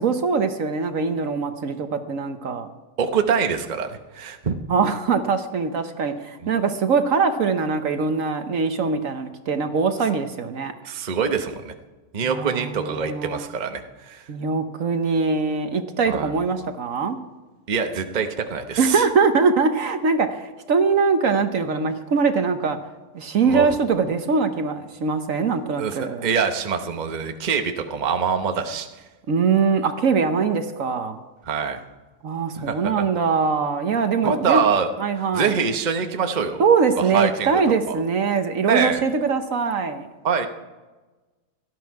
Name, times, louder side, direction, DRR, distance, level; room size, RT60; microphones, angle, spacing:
voice 1, 0.0-2.7 4.7-10.7 12.2-13.5 14.3-17.2 18.8-22.8 23.1-26.3 29.3-31.2 32.2-34.6 35.0-35.6 36.6-40.1, right 5 dB, 60° right, 8 dB, 1.3 m, -22 dB
voice 2, 3.0-4.6 6.4-6.5 10.8-11.7 12.1-14.2 16.1-16.3 17.7-19.0 23.4-23.7 25.8-28.9 31.4-31.8 32.6-33.0 34.2-34.9 35.2-36.6 37.0-38.0 38.6-39.0 40.2-40.5, right 6 dB, 35° right, 6 dB, 1.0 m, -24 dB
18.0 x 13.0 x 4.7 m, 1.2 s
omnidirectional pair, 1.6 m